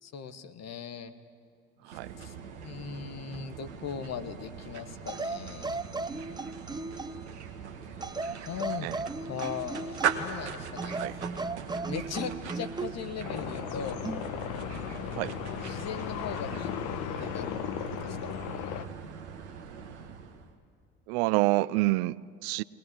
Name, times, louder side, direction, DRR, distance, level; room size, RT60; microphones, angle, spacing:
voice 1, 0.0-1.1 1.9-2.3 2.6-5.8 8.4-8.9 9.2-11.0 11.9-14.0 15.6-16.7 17.2-17.6 18.0-18.4, left 7 dB, 50° left, 1.6 m, -39 dB
voice 2, 1.8-2.1 8.8-9.0 11.0-11.2 15.2-15.4 21.1-22.6, right 20 dB, 70° right, 0.5 m, -28 dB
sound 1, 1.9-20.5, right 7 dB, 85° right, 1.4 m, -40 dB
sound 2, 5.1-7.3 8.0-10.4 10.8-13.0 14.0-14.3, right 3 dB, 10° right, 0.8 m, -36 dB
sound 3, 13.2-18.9, left 9 dB, 70° left, 1.1 m, -36 dB
21.5 x 20.0 x 9.5 m
hypercardioid pair, 55°, 33 cm